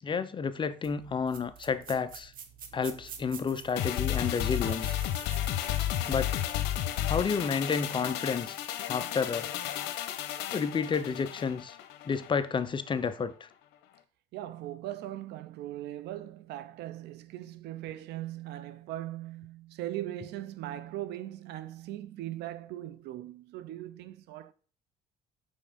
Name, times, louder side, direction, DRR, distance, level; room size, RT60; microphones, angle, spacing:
voice 1, 0.0-2.3 2.7-5.0 6.1-6.3 7.1-8.6 8.9-9.5 10.5-11.8 12.1-13.5, left 5 dB, 30° left, 0.6 m, -30 dB
sound 1, 0.8-7.6, right 7 dB, 55° right, 1.1 m, -49 dB
sound 2, 3.8-12.3 12.6-12.8, left 12 dB, 90° left, 0.7 m, -32 dB
voice 2, 14.3-24.5, right 13 dB, 80° right, 0.6 m, -39 dB
5.6 x 4.4 x 5.0 m
cardioid pair, 110°, 17 cm